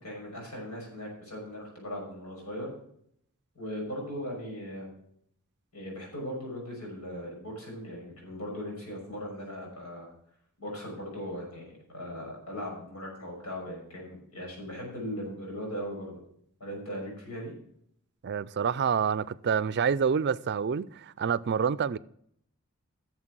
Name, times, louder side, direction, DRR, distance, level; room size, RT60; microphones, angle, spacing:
voice 1, 0.0-2.7 3.5-4.9 5.7-10.1 10.6-16.2 16.6-17.5, equal, 90° left, 6.0 m, -38 dB
voice 2, 18.2-22.0, right 6 dB, 50° right, 0.4 m, -27 dB
11.0 x 7.3 x 6.1 m
head